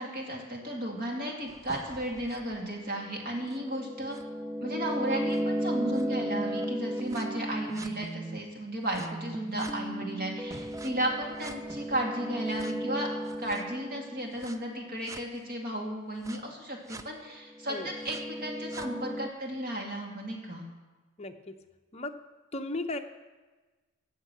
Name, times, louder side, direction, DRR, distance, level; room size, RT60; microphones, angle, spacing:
voice 1, 0.0-4.2 4.6-13.1 13.4-20.6, right 1 dB, 40° right, 0 dB, 2.3 m, -34 dB
sound 1, 1.5-8.4 8.9-14.6 15.1-15.2 16.2-16.4 16.9-17.0 17.5-19.3, right 1 dB, 15° right, 0.3 m, -35 dB
voice 2, 21.2-21.5 21.9-22.1 22.5-23.0, left 2 dB, 30° left, 6 dB, 0.7 m, -35 dB
16.5 x 6.7 x 6.0 m, 1.3 s
head